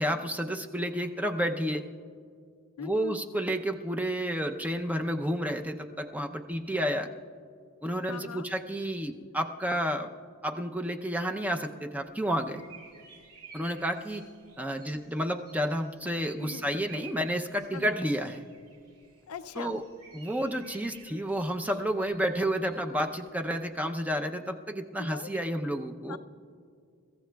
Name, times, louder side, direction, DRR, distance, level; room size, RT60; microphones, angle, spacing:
voice 1, 0.0-1.9 2.8-7.1 7.8-10.1 10.4-12.6 13.5-14.2 14.6-18.4 19.6-19.8 20.1-26.2, equal, 5° right, 4 dB, 0.5 m, -31 dB
voice 2, 2.8-3.2 8.1-8.5 16.4-16.7 17.7-18.0 19.3-19.8 25.0-25.3 26.1-26.2, left 6 dB, 75° left, 11 dB, 0.5 m, -40 dB
sound 1, 12.0-23.6, right 5 dB, 85° right, 3.8 m, -54 dB
29.5 x 15.0 x 2.3 m, 2.3 s
head